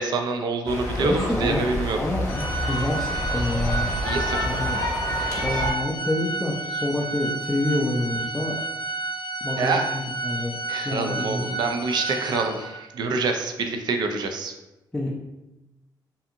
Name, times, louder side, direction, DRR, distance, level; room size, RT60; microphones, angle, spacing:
voice 1, 0.0-2.0 4.0-4.6 5.4-5.5 9.6-9.9 10.7-14.5, right 4 dB, 65° right, 5 dB, 0.4 m, -26 dB
sound 1, 0.7-5.7, equal, 35° left, 0.8 m, -28 dB
voice 2, 1.0-1.7 1.9-3.9 4.4-4.8 5.4-8.6 9.4-10.5 10.8-11.5 14.9-15.2, left 1 dB, 10° left, -3 dB, 0.3 m, -27 dB
Organ, 2.3-12.9, right 3 dB, 85° left, 0.4 m, -31 dB
2.7 x 2.5 x 2.5 m, 1.0 s
cardioid pair, 110°, 8 cm